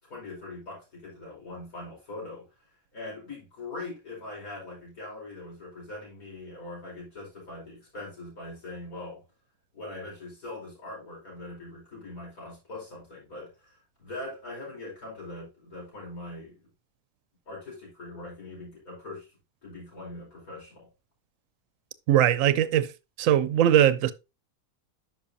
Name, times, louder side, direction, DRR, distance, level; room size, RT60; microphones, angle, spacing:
voice 1, 0.1-2.4 2.9-9.2 9.7-16.6 17.5-19.3 19.6-20.9, left 2 dB, 70° left, 5.4 m, -41 dB
voice 2, 22.1-22.9 23.2-24.1, right 11 dB, 70° right, 0.9 m, -21 dB
10.0 x 5.8 x 2.7 m
omnidirectional pair, 1.6 m